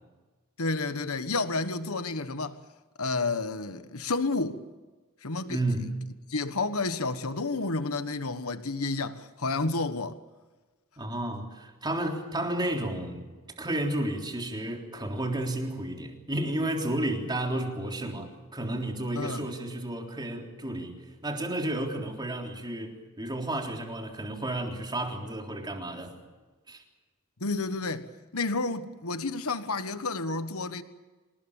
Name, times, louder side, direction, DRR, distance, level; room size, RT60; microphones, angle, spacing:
voice 1, 0.6-2.6 3.0-4.6 5.2-5.6 6.3-10.2 19.1-19.4 27.4-30.8, left 3 dB, 70° left, 1.4 m, -30 dB
voice 2, 5.5-5.9 11.0-13.3 13.6-26.1 26.7-26.8, right 1 dB, 20° right, 3.7 m, -32 dB
26.5 x 20.0 x 8.8 m
head